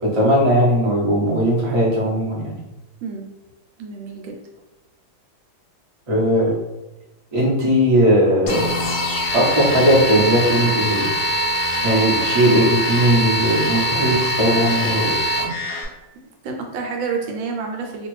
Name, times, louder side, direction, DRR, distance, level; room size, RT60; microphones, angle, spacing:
voice 1, 0.0-2.5 6.1-6.5 7.3-8.7 9.3-11.1 11.8-15.1, equal, 40° right, -7 dB, 0.5 m, -18 dB
voice 2, 3.8-4.4 16.4-18.1, right 5 dB, 80° right, 1 dB, 1.3 m, -28 dB
sound 1, 8.5-15.8, equal, 65° left, 1.1 m, -22 dB
2.9 x 2.5 x 3.1 m, 1.0 s
omnidirectional pair, 2.2 m